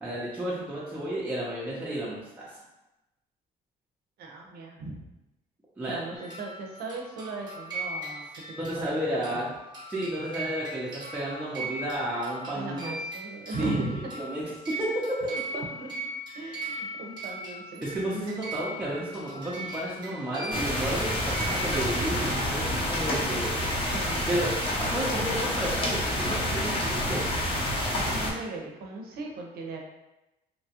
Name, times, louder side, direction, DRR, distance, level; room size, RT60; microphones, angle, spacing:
voice 1, 0.0-2.5 5.8-6.0 8.6-9.5 9.9-12.9 13.6-13.8 14.1-15.0 17.8-23.5 24.3-24.5 24.8-27.2, right 1 dB, 10° right, -7 dB, 0.6 m, -32 dB
voice 2, 4.2-5.0 5.9-9.0 9.3-9.5 12.5-14.1 15.3-15.9 16.3-17.8 23.8-24.3 27.9-29.8, right 2 dB, 65° right, 1 dB, 0.6 m, -37 dB
sound 1, 6.2-22.2, right 1 dB, 25° right, 1.0 m, -39 dB
sound 2, 20.5-28.3, left 1 dB, 30° left, 0.7 m, -28 dB
2.9 x 2.3 x 2.8 m, 0.97 s
cardioid pair, 110°, 17 cm